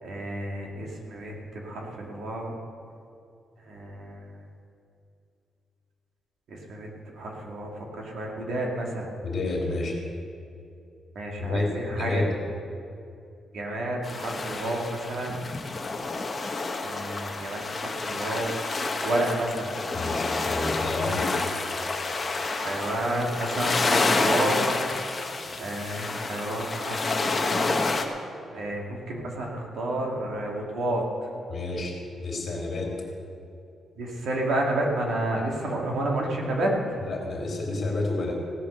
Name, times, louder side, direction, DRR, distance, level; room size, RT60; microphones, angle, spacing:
voice 1, 0.0-2.5 3.6-4.4 6.5-9.1 11.1-12.2 13.5-15.4 16.8-18.5 19.0-19.7 22.5-24.7 25.6-27.8 28.5-31.0 34.0-37.0, right 1 dB, 65° right, -1 dB, 2.4 m, -30 dB
voice 2, 9.2-10.0 11.4-12.3 19.9-21.3 31.5-32.9 37.0-38.3, left 2 dB, 40° left, -2 dB, 3.2 m, -29 dB
sound 1, 14.0-28.0, left 3 dB, 25° left, 1.1 m, -29 dB
17.0 x 8.5 x 6.7 m, 2.5 s
wide cardioid pair, 165°, 0 cm